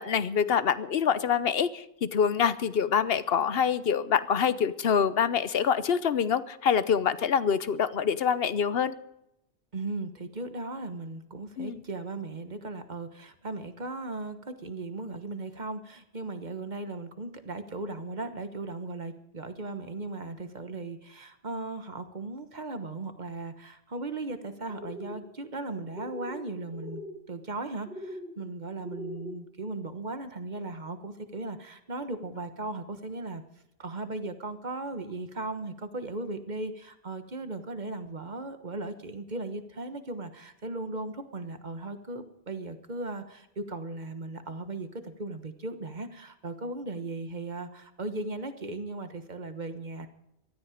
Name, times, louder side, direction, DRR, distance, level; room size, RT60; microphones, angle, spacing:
voice 1, 0.0-8.9 11.6-11.8, left 7 dB, 60° left, 15 dB, 0.9 m, -26 dB
voice 2, 9.7-33.4 33.8-50.1, right 2 dB, 40° right, 8 dB, 1.4 m, -37 dB
sound 1, 24.7-25.2 25.9-26.4 26.7-27.2 27.9-28.3 28.8-29.4, left 1 dB, 65° right, 2.7 m, -40 dB
18.5 x 13.0 x 5.0 m, 0.83 s
omnidirectional pair, 1.2 m